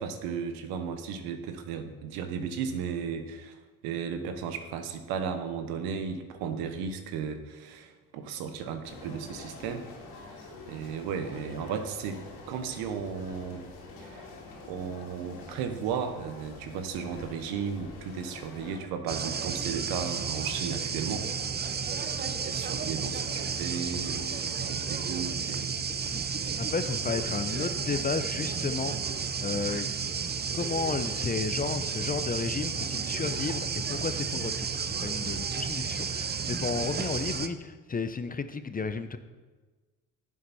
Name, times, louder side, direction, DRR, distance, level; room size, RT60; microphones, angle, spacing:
voice 1, 0.0-3.6 3.8-9.8 10.7-12.2 12.5-13.7 14.0-14.3 14.7-21.3 22.2-26.0, right 6 dB, 80° right, 8 dB, 1.1 m, -35 dB
sound 1, 8.8-18.8, left 3 dB, 70° left, 2.7 m, -46 dB
sound 2, 19.1-37.5, right 6 dB, 25° right, 0.7 m, -32 dB
voice 2, 26.7-29.9 30.5-39.2, left 4 dB, 25° left, 10 dB, 0.7 m, -33 dB
10.5 x 7.3 x 4.2 m, 1.3 s
supercardioid pair, 65°, 37 cm